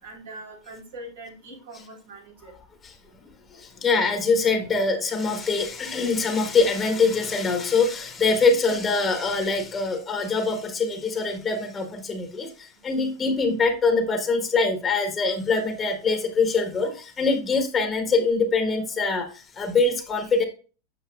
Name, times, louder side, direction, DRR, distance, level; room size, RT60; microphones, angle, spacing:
voice 1, 0.0-2.5, right 1 dB, 85° right, -2 dB, 3.8 m, -42 dB
voice 2, 3.5-19.3 19.6-20.4, left 4 dB, 25° left, 4 dB, 1.4 m, -23 dB
7.7 x 6.1 x 2.4 m, 0.36 s
hypercardioid pair, 120°, 0 cm